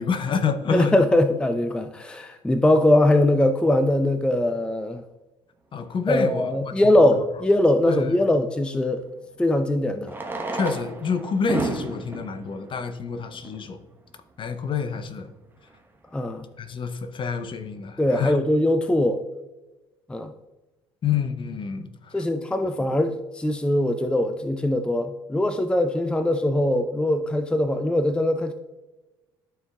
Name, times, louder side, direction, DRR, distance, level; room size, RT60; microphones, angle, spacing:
voice 1, 0.0-1.0 5.7-7.1 7.9-8.0 10.5-13.8 14.4-15.3 16.6-18.4 21.0-22.2 22.8-22.9, left 5 dB, 40° left, 9 dB, 0.7 m, -28 dB
voice 2, 0.7-5.0 6.1-9.0 9.4-10.2 16.1-16.5 18.0-19.2 20.1-20.3 22.1-28.5, left 1 dB, 5° left, 9 dB, 0.5 m, -21 dB
Fireworks, 6.5-6.6 8.8-8.9 10.0-13.8 14.5-14.6 14.8-14.9 15.1-15.2 15.7-16.0, right 2 dB, 15° right, 1.1 m, -32 dB
12.5 x 4.5 x 2.3 m, 1.1 s
figure-of-eight pair, 55°, 14 cm